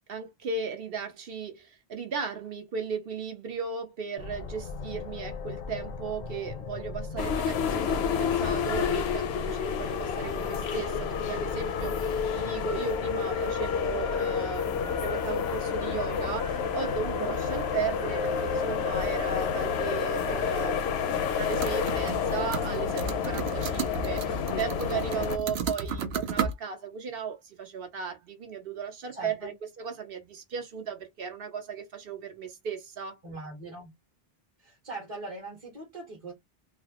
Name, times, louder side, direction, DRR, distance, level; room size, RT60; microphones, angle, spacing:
voice 1, 0.1-33.2, right 6 dB, 65° right, 1.0 m, -36 dB
sound 1, 4.2-12.8, left 4 dB, 55° left, 0.6 m, -39 dB
sound 2, 7.2-25.4, left 7 dB, 85° left, 0.8 m, -29 dB
sound 3, 21.5-22.3 22.5-26.5, right 5 dB, 90° right, 0.9 m, -33 dB
voice 2, 29.1-29.5 33.2-33.9 34.6-36.3, right 2 dB, 35° right, 1.1 m, -41 dB
3.3 x 2.0 x 2.8 m
omnidirectional pair, 1.0 m